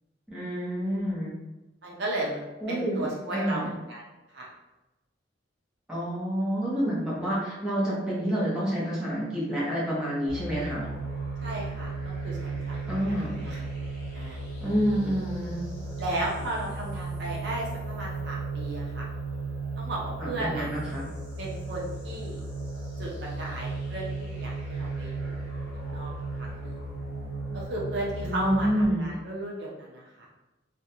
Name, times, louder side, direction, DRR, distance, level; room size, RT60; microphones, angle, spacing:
voice 1, 0.3-1.4 2.6-3.7 5.9-10.9 12.9-13.4 14.6-15.7 20.2-21.1 28.2-29.1, equal, 5° right, -8 dB, 0.6 m, -28 dB
voice 2, 1.8-4.0 4.3-4.5 11.4-13.7 14.1-14.4 16.0-19.1 19.8-20.7 21.4-22.4 23.0-25.4 25.7-26.1 26.4-26.9 27.5-30.3, right 1 dB, 60° right, -3 dB, 0.5 m, -35 dB
sound 1, 10.3-28.8, right 3 dB, 55° left, 0.9 m, -35 dB
2.4 x 2.1 x 2.8 m, 1.0 s
head